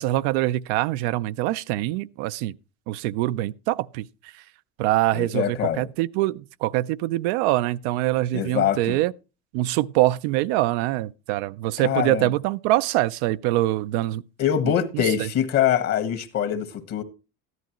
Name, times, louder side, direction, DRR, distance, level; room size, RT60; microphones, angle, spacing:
voice 1, 0.0-2.5 2.9-4.3 4.8-9.1 9.5-14.2 14.6-15.3, right 16 dB, 90° right, 0.5 m, -24 dB
voice 2, 5.1-5.9 8.3-9.0 11.8-12.3 14.4-17.0, left 9 dB, 55° left, 1.5 m, -24 dB
13.5 x 11.0 x 3.0 m
supercardioid pair, 110°, 31 cm